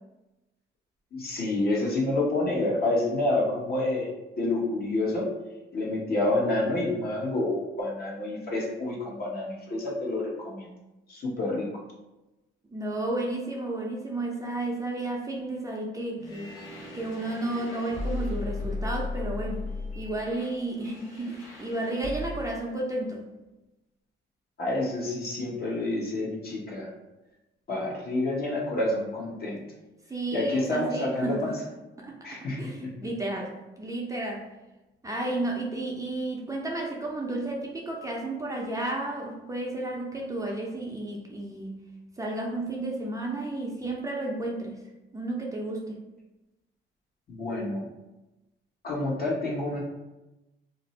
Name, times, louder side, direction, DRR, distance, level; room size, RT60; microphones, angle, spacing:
voice 1, 1.1-5.3 5.7-10.7 11.1-11.7 24.6-26.9 27.7-29.6 30.3-31.5 32.2-32.9 47.3-47.8 48.8-49.8, left 2 dB, 50° left, -3 dB, 1.0 m, -28 dB
voice 2, 12.7-16.5 16.9-19.7 20.0-23.2 30.1-31.5 32.0-34.5 35.0-41.8 42.2-44.8 45.1-46.0, right 2 dB, 15° right, -2 dB, 0.5 m, -32 dB
sound 1, 16.2-22.6, left 2 dB, 80° left, 1.0 m, -36 dB
2.5 x 2.0 x 3.9 m, 1.0 s
cardioid pair, 90°, 20 cm